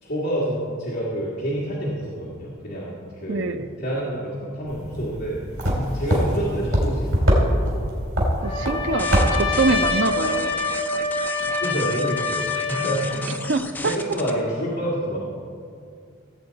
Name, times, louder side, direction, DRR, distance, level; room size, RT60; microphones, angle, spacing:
voice 1, 0.0-3.0 3.2-5.4 5.9-7.7 11.0-11.3 11.6-13.4 13.8-15.2, right 1 dB, 55° left, -7 dB, 1.8 m, -28 dB
voice 2, 3.3-3.7 8.4-10.5 13.5-13.9, right 3 dB, 60° right, 10 dB, 0.5 m, -24 dB
sound 1, 4.7-9.9, equal, 85° right, 3.1 m, -23 dB
Trumpet, 8.4-13.3, left 3 dB, 25° left, 2.2 m, -26 dB
sound 2, 9.0-14.3, left 2 dB, 10° left, 0.5 m, -36 dB
16.0 x 8.1 x 4.0 m, 2.3 s
head